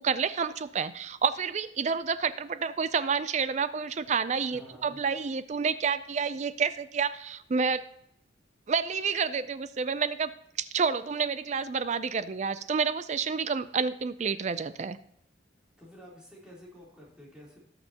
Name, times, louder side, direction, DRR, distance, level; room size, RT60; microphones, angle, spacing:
voice 1, 0.0-7.8 8.7-10.3 10.6-15.0, right 5 dB, 40° right, 14 dB, 0.4 m, -29 dB
voice 2, 4.5-5.0 15.8-17.6, equal, 5° right, -5 dB, 3.5 m, -50 dB
18.0 x 6.6 x 2.9 m, 0.74 s
head